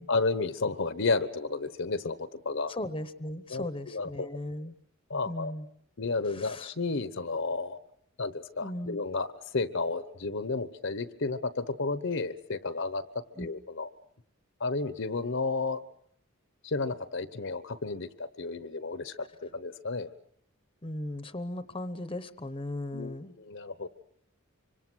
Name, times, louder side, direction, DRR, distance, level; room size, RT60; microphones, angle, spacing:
voice 1, 0.1-2.7 3.5-4.3 5.1-5.5 6.0-7.8 8.2-9.3 9.5-13.9 14.6-15.8 16.6-20.1 22.9-23.9, left 3 dB, 60° left, 13 dB, 1.0 m, -32 dB
voice 2, 2.7-4.7 5.3-5.7 6.3-6.7 8.6-9.0 13.4-13.5 20.8-23.3, left 1 dB, 25° left, 12 dB, 1.0 m, -37 dB
26.0 x 25.0 x 6.3 m, 0.70 s
head